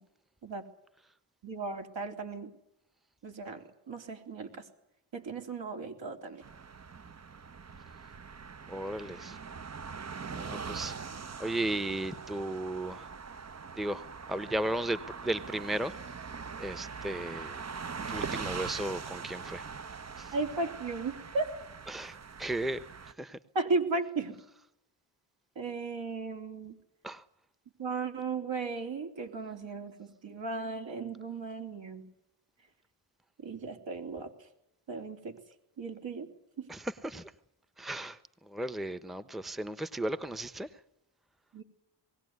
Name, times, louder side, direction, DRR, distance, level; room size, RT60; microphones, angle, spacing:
voice 1, 1.4-2.5 3.2-4.7 5.1-6.4 20.3-21.5 23.6-24.4 25.6-26.8 27.8-32.1 33.4-34.3 34.9-35.4 35.8-36.3 36.6-36.7 41.5-41.6, right 3 dB, 65° right, 3.6 m, -35 dB
sound 1, 6.4-23.1, right 5 dB, 35° right, 0.9 m, -42 dB
voice 2, 8.7-9.4 10.3-10.9 11.4-13.1 13.7-16.0 16.6-17.6 18.1-19.6 20.1-20.3 21.9-23.4 27.0-27.2 36.7-37.3 37.8-40.7, right 1 dB, ahead, 1.1 m, -35 dB
20.5 x 17.0 x 9.6 m
cardioid pair, 65°, 48 cm